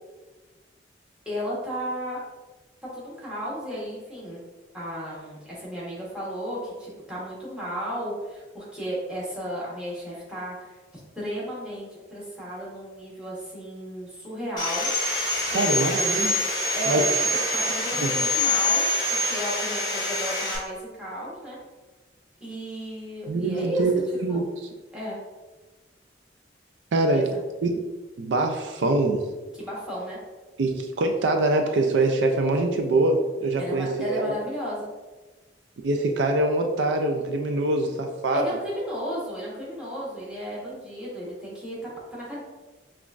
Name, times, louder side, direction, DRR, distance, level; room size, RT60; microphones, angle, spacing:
voice 1, 1.2-2.2 2.9-4.4 4.7-10.7 11.2-14.9 15.4-15.6 15.8-16.1 16.7-17.1 17.5-21.6 22.4-23.8 24.3-24.4 24.9-25.2 27.1-27.4 29.5-30.2 33.6-34.9 38.3-42.4, equal, 5° right, -7 dB, 1.1 m, -34 dB
Sawing, 14.6-20.6, left 1 dB, 25° left, 1.0 m, -25 dB
voice 2, 15.5-16.3 16.9-17.0 18.0-18.1 23.3-24.4 26.9-27.2 27.6-27.7 28.2-29.2 30.6-34.3 35.8-38.5, right 2 dB, 80° right, 4 dB, 0.4 m, -24 dB
5.7 x 2.4 x 2.4 m, 1.2 s
head